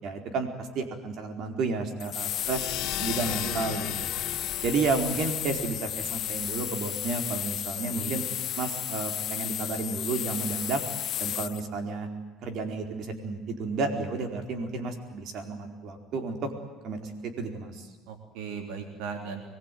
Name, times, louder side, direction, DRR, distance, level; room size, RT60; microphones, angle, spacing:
voice 1, 0.0-2.7 3.0-4.1 4.6-8.2 8.6-10.8 11.2-12.1 12.4-16.5 16.8-17.9, right 4 dB, 60° right, 5 dB, 4.6 m, -31 dB
sound 1, 2.0-11.6, left 11 dB, 50° left, 0.8 m, -33 dB
sound 2, 2.4-7.5, left 13 dB, 70° left, 2.1 m, -38 dB
voice 2, 3.4-3.9 7.8-8.1 18.1-19.4, right 6 dB, 85° right, 5 dB, 3.6 m, -38 dB
25.0 x 21.5 x 9.4 m, 1.2 s
cardioid pair, 120°, 0 cm